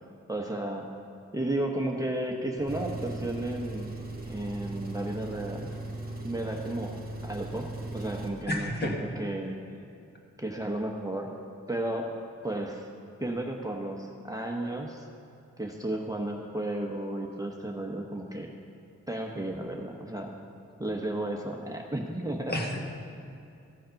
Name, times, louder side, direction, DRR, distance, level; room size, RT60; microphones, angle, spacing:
voice 1, 0.3-0.9 1.3-5.7 6.2-6.9 7.2-9.6 10.4-11.3 11.7-12.1 12.4-12.9 13.2-15.1 15.6-18.5 19.1-20.3 20.8-22.6, right 1 dB, 10° right, 0 dB, 0.8 m, -33 dB
Engine, 2.6-8.4, right 2 dB, 30° right, 1.4 m, -38 dB
voice 2, 8.5-9.0 22.5-22.8, left 1 dB, 35° left, 0 dB, 1.6 m, -30 dB
14.5 x 6.3 x 5.7 m, 2.6 s
wide cardioid pair, 90°, 30 cm